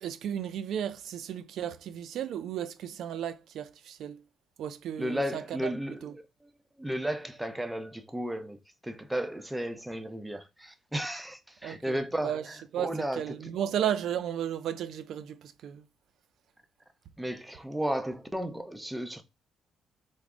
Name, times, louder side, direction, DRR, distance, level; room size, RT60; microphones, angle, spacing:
voice 1, 0.0-4.2 4.6-5.7 6.0-6.1 11.6-12.5 12.7-15.9, right 10 dB, 75° right, 0.3 m, -34 dB
voice 2, 5.0-6.1 6.4-6.5 6.8-13.2 17.2-19.2, equal, 5° right, 0.5 m, -34 dB
3.5 x 2.0 x 3.6 m
cardioid pair, 90°, 0 cm